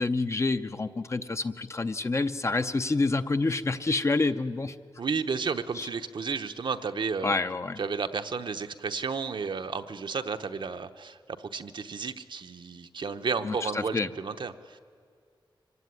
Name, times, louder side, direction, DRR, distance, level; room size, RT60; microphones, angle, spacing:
voice 1, 0.0-4.7 5.8-5.9 7.2-7.8 13.4-14.1, left 3 dB, 35° left, 10 dB, 0.7 m, -28 dB
voice 2, 5.0-7.3 7.8-14.8, right 5 dB, 65° right, 8 dB, 0.9 m, -32 dB
25.0 x 16.5 x 9.6 m, 2.2 s
wide cardioid pair, 135°, 9 cm